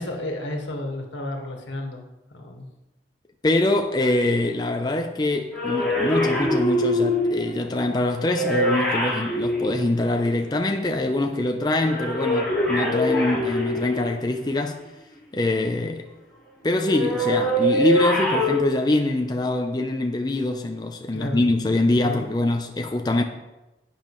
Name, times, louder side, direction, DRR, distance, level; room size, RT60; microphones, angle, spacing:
voice 1, 0.0-2.0 2.3-2.7 21.1-21.4 22.0-22.2, left 1 dB, 85° left, 1.6 m, -32 dB
voice 2, 3.4-14.8 15.3-16.1 16.6-23.2, left 2 dB, 20° left, 0.5 m, -24 dB
sound 1, 5.5-10.5 11.8-14.4 16.8-18.6, left 1 dB, 5° left, 3.9 m, -24 dB
11.0 x 8.7 x 3.1 m
head